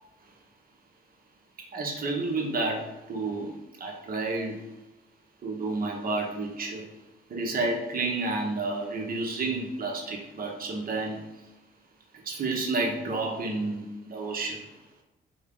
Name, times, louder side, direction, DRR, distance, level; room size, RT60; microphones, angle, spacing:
voice 1, 1.7-4.6 5.4-6.9 7.3-11.3 12.2-14.7, right 3 dB, 45° right, 1 dB, 0.9 m, -30 dB
3.3 x 2.7 x 3.6 m, 1.0 s
cardioid pair, 90°, 20 cm